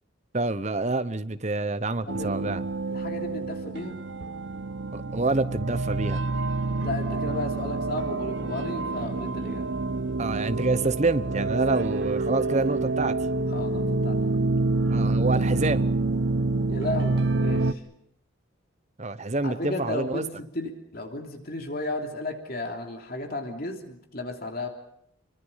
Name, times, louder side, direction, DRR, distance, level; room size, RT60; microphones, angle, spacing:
voice 1, 0.3-2.6 4.9-6.2 10.2-13.2 14.9-15.9 19.0-20.2, right 3 dB, 35° right, 13 dB, 0.9 m, -27 dB
voice 2, 2.1-2.6 2.9-4.0 6.8-9.7 13.5-14.6 16.7-17.8 19.4-24.7, left 2 dB, 45° left, 3 dB, 3.1 m, -34 dB
sound 1, 2.1-17.7, right 3 dB, 60° right, 0.9 m, -27 dB
26.5 x 24.0 x 5.7 m, 0.73 s
head